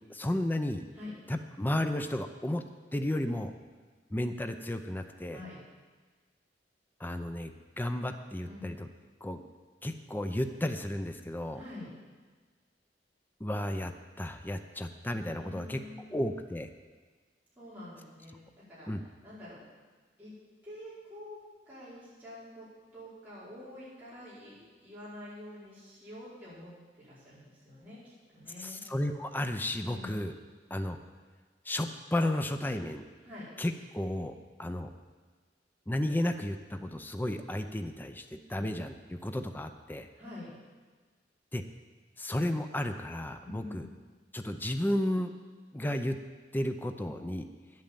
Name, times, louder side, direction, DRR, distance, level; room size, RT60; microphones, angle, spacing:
voice 1, 0.1-0.8 1.3-2.7 2.9-3.5 4.1-5.4 7.0-8.9 9.2-9.4 9.8-11.6 13.4-15.8 16.1-16.7 18.9-19.0 28.6-30.3 30.7-31.0 31.6-33.0 33.6-34.9 35.9-40.1 41.5-41.6 42.2-43.9 44.3-45.3 45.7-46.2 46.5-47.5, left 1 dB, 10° left, 7 dB, 0.5 m, -33 dB
voice 2, 5.3-5.6 8.4-8.7 11.5-11.9 15.4-16.4 17.6-18.4 18.7-18.9 19.2-19.6 20.2-20.3 20.6-21.4 21.6-22.7 22.9-28.8 29.8-30.2 33.2-33.5 40.1-40.6 43.4-43.9, left 1 dB, 10° right, -11 dB, 4.9 m, -47 dB
10.5 x 8.7 x 7.5 m, 1.4 s
head